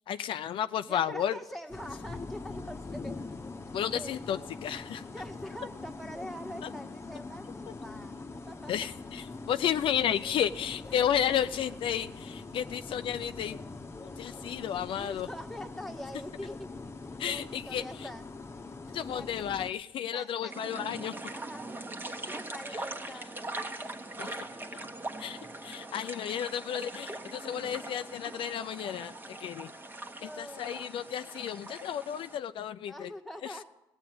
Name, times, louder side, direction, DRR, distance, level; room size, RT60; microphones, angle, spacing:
voice 1, 0.1-1.4 3.7-5.1 6.6-6.7 8.7-13.6 14.2-15.3 17.2-18.1 18.9-21.3 22.7-22.8 24.2-24.4 24.7-24.8 25.2-29.7 30.2-33.1 33.4-33.6, left 9 dB, 70° left, 10 dB, 0.5 m, -32 dB
voice 2, 0.9-3.2 3.9-4.2 4.8-8.7 15.0-16.7 17.2-18.2 19.1-19.3 20.1-20.5 21.3-21.8 22.3-24.5 30.1-30.7 32.9-33.6, equal, 5° left, 3 dB, 1.6 m, -44 dB
sound 1, 1.7-19.7, left 3 dB, 30° left, 1.0 m, -43 dB
sound 2, 20.5-32.4, right 2 dB, 20° right, 1.3 m, -41 dB
16.0 x 9.0 x 7.6 m, 0.89 s
cardioid pair, 75°, 9 cm